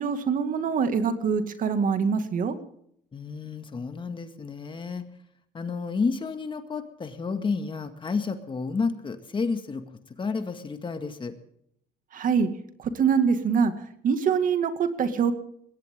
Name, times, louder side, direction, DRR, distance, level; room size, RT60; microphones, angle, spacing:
voice 1, 0.0-2.6 12.1-12.5 12.8-13.7 14.0-15.3, right 6 dB, 55° right, 9 dB, 2.1 m, -24 dB
voice 2, 3.1-5.0 5.5-9.8 10.2-11.3, left 4 dB, 30° left, 8 dB, 1.9 m, -31 dB
21.0 x 17.5 x 3.7 m, 0.69 s
cardioid pair, 110°, 17 cm